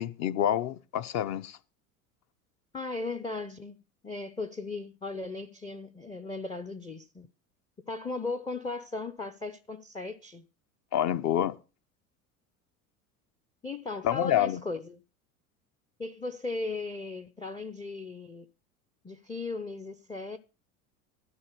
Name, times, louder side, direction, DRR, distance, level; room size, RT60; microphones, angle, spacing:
voice 1, 0.0-1.6 10.9-11.5 14.0-14.6, left 11 dB, 40° left, 0.9 m, -27 dB
voice 2, 2.7-3.8 4.0-7.3 7.9-10.5 13.6-15.0 16.0-18.5 19.0-20.4, left 3 dB, 10° left, 0.6 m, -37 dB
12.5 x 4.5 x 8.4 m
figure-of-eight pair, 75°, 44 cm